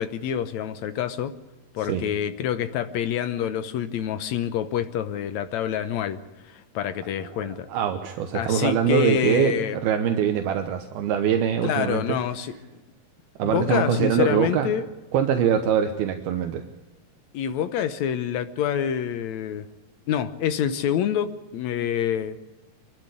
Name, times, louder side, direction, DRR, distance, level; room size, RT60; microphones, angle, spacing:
voice 1, 0.0-1.3 1.7-6.2 6.4-7.7 8.3-9.8 11.6-12.5 13.4-14.8 17.3-19.6 20.1-22.4, left 9 dB, 85° left, 11 dB, 1.6 m, -27 dB
voice 2, 7.2-12.2 13.4-14.7 15.1-16.6, right 8 dB, 75° right, 6 dB, 3.0 m, -23 dB
26.0 x 12.0 x 9.8 m, 1.0 s
omnidirectional pair, 4.5 m